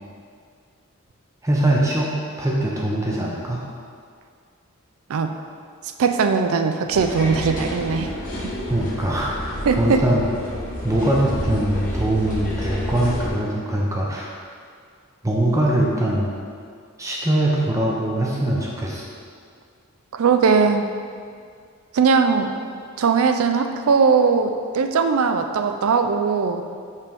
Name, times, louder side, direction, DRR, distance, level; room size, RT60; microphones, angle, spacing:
voice 1, 1.4-3.6 8.7-10.2 10.8-14.3 15.2-16.3 17.0-19.1, right 1 dB, 15° right, -4 dB, 0.6 m, -22 dB
voice 2, 6.0-8.1 8.4-8.5 9.7-10.0 20.1-20.9 21.9-22.5 23.0-26.6, right 5 dB, 75° right, 7 dB, 0.4 m, -19 dB
sound 1, 6.9-13.3, equal, 35° left, 1.0 m, -29 dB
5.4 x 3.4 x 5.2 m, 2.2 s
head